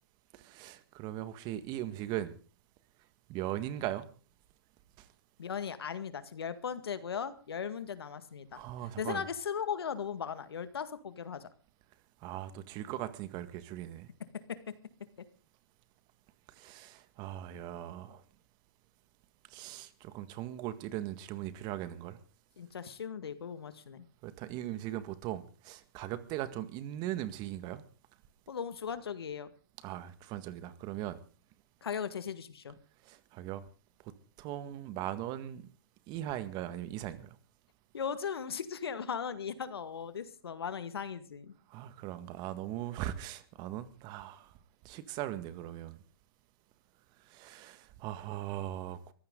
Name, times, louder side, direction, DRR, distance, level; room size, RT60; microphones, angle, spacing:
voice 1, 0.3-2.4 3.3-4.1 5.0-5.1 8.5-9.2 12.2-14.1 16.5-18.2 19.5-22.2 24.2-27.8 29.8-31.2 33.0-33.6 34.4-35.6 36.1-37.3 41.7-44.5 44.8-46.0 47.3-49.1, right 13 dB, 35° right, 1.8 m, -39 dB
voice 2, 5.4-8.6 9.0-11.5 14.5-14.7 22.6-24.0 28.5-29.5 31.8-32.8 37.9-41.5, left 7 dB, 75° left, 2.0 m, -38 dB
22.5 x 15.5 x 3.9 m
hypercardioid pair, 130°, 13 cm